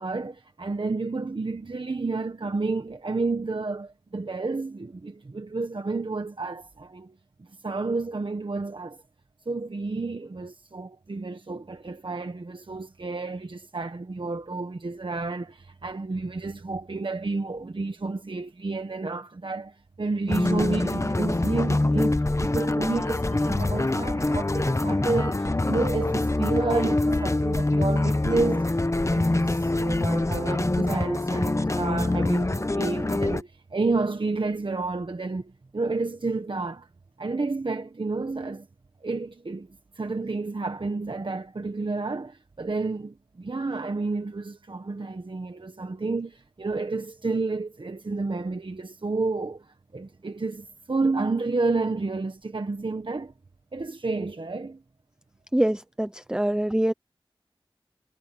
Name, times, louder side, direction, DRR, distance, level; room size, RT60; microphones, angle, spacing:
voice 1, 0.0-9.0 9.5-28.7 29.1-36.9 37.2-38.7 39.0-53.3 53.7-54.8, right 3 dB, 60° right, 1.4 m, -30 dB
sound 1, 20.3-33.4, left 2 dB, 30° left, 1.0 m, -25 dB
voice 2, 55.5-56.9, right 1 dB, 10° right, 0.6 m, -24 dB
wide cardioid pair, 60°, 9 cm